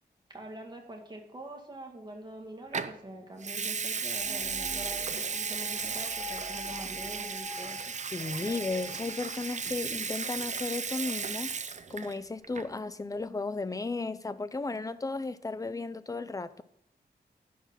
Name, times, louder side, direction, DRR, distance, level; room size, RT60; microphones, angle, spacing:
voice 1, 0.3-7.8, right 1 dB, 25° right, 1.9 m, -44 dB
Water tap faucet / Sink (filling or washing) / Liquid, 2.7-3.0 3.4-12.2 12.4-12.8, right 5 dB, 45° right, 0.6 m, -35 dB
sound 1, 4.2-9.6, left 2 dB, 60° right, 2.3 m, -46 dB
voice 2, 8.1-11.5 11.9-16.6, left 3 dB, 20° left, 0.5 m, -34 dB
10.5 x 5.9 x 5.7 m
wide cardioid pair, 130°, 17 cm